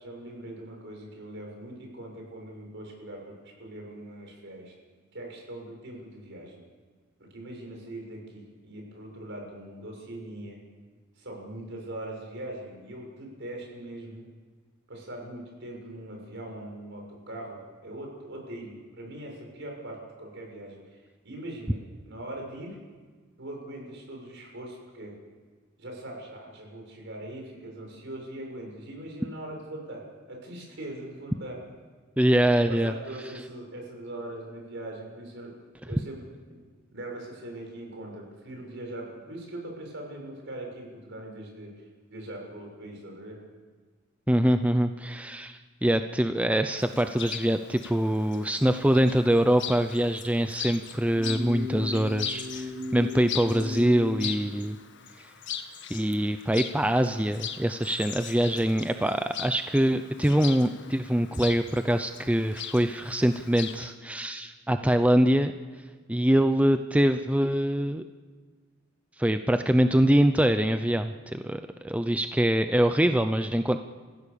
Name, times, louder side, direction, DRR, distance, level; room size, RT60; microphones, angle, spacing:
voice 1, 0.0-4.7 5.1-6.6 7.3-10.6 11.2-14.3 14.9-22.8 23.4-25.1 25.8-30.0 30.3-31.6 32.7-35.5 35.8-36.2 36.5-36.6 36.9-41.7 42.1-43.4, right 1 dB, 60° right, 1 dB, 6.8 m, -41 dB
voice 2, 32.2-32.9 44.3-54.8 55.2-55.3 55.9-65.5 66.1-68.0 69.2-73.8, right 1 dB, 5° right, 8 dB, 0.6 m, -24 dB
Chirp tweet, 46.8-63.9, left 8 dB, 60° left, 1.6 m, -40 dB
sound 1, 51.1-54.3, left 5 dB, 80° right, 7.9 m, -36 dB
30.0 x 16.0 x 7.0 m, 1.5 s
head